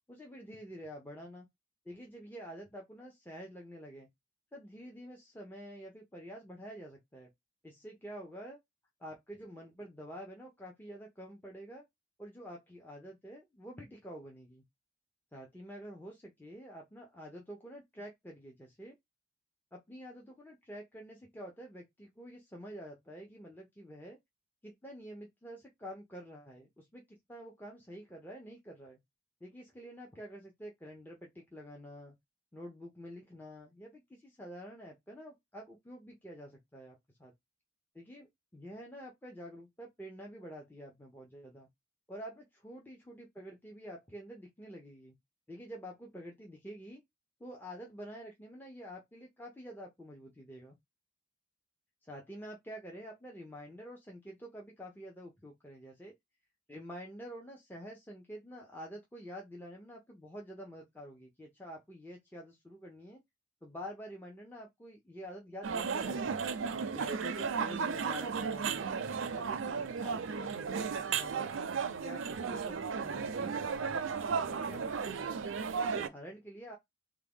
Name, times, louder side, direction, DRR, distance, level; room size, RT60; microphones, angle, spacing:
voice 1, 0.1-1.5 1.9-4.1 4.5-7.3 7.6-8.6 9.0-11.8 12.2-14.6 15.3-18.9 19.7-24.2 24.6-29.0 29.4-32.2 32.5-37.3 37.9-41.7 42.1-45.2 45.5-47.0 47.4-50.8 52.0-56.1 56.7-63.2 63.6-66.4 66.9-69.0 69.3-71.6 72.0-74.0 74.3-75.5 75.8-76.8, equal, 10° left, 0.6 m, -48 dB
sound 1, 65.6-76.1, right 6 dB, 80° right, 0.5 m, -34 dB
3.6 x 2.2 x 3.4 m
head